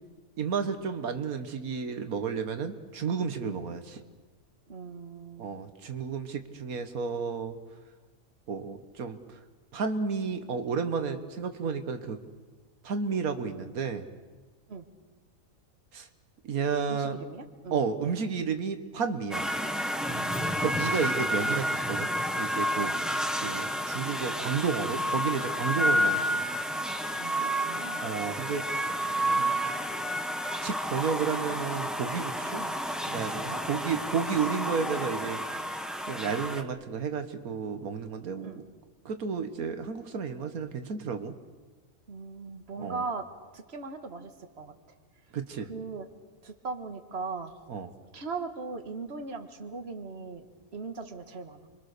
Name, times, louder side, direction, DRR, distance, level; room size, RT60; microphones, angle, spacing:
voice 1, 0.4-4.0 5.4-7.6 8.5-9.4 9.7-12.2 12.8-14.1 15.9-16.1 16.4-17.2 17.7-19.5 20.6-22.1 22.3-22.9 23.4-26.4 28.0-28.6 29.3-29.5 30.6-32.6 33.0-35.7 36.0-38.5 39.0-41.3 42.8-43.1 45.3-45.7 47.7-47.9, right 6 dB, 90° right, 7 dB, 1.7 m, -32 dB
voice 2, 4.7-5.5 14.7-14.9 16.9-17.8 20.1-20.6 22.8-23.0 25.8-26.2 27.2-28.0 32.6-32.7 33.5-33.7 38.4-38.6 42.1-43.3 43.5-44.7 45.7-46.1 46.4-47.5 48.1-51.7, right 4 dB, 45° right, 6 dB, 2.0 m, -39 dB
sound 1, 19.3-36.6, equal, ahead, 1.3 m, -30 dB
29.0 x 23.5 x 6.7 m, 1.3 s
omnidirectional pair, 1.5 m